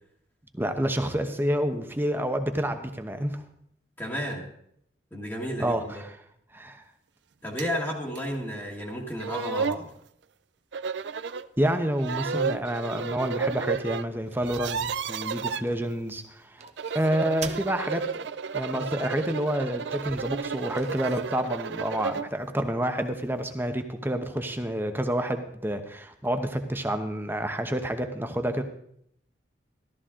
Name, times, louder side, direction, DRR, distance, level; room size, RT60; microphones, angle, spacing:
voice 1, 0.5-3.4 5.6-6.2 6.5-6.8 11.6-16.6 16.9-18.0 18.5-28.6, right 1 dB, 10° right, 7 dB, 0.9 m, -28 dB
voice 2, 4.0-4.4 5.1-6.0 7.4-9.9, equal, 10° left, -3 dB, 1.6 m, -32 dB
sound 1, 7.6-7.7 8.2-8.3 8.9-9.0 9.2-9.9 10.7-11.5 12.0-14.0 14.3-15.6 16.6-22.3, right 5 dB, 80° right, 0.5 m, -32 dB
sound 2, 14.2-16.1 16.6-17.7 18.0-18.1 19.8-21.3, right 6 dB, 40° right, 0.8 m, -44 dB
14.0 x 13.0 x 3.7 m, 0.71 s
head